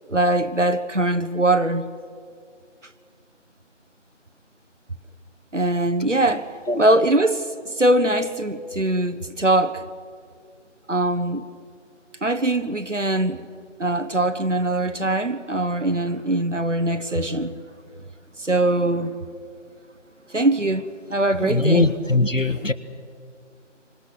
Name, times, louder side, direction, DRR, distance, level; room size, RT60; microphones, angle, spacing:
voice 1, 0.1-1.9 5.5-9.9 10.9-11.4 12.2-13.5 13.8-17.5 18.4-19.2 20.3-21.9, right 1 dB, 70° right, 1.5 m, -22 dB
voice 2, 21.4-22.7, left 2 dB, 85° left, 1.8 m, -20 dB
27.5 x 24.5 x 6.3 m
figure-of-eight pair, 180°, 37 cm